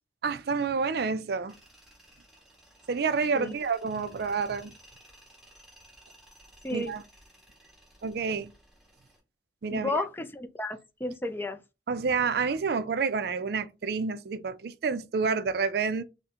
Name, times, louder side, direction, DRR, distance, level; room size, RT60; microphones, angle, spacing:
voice 1, 0.2-1.6 2.9-4.7 6.7-7.0 8.0-8.5 9.6-10.0 11.9-16.0, right 5 dB, 55° right, 0.4 m, -29 dB
Tools, 1.5-9.2, right 1 dB, 5° right, 2.0 m, -57 dB
voice 2, 9.7-11.6, left 2 dB, 10° left, 0.4 m, -32 dB
5.7 x 2.1 x 2.8 m
head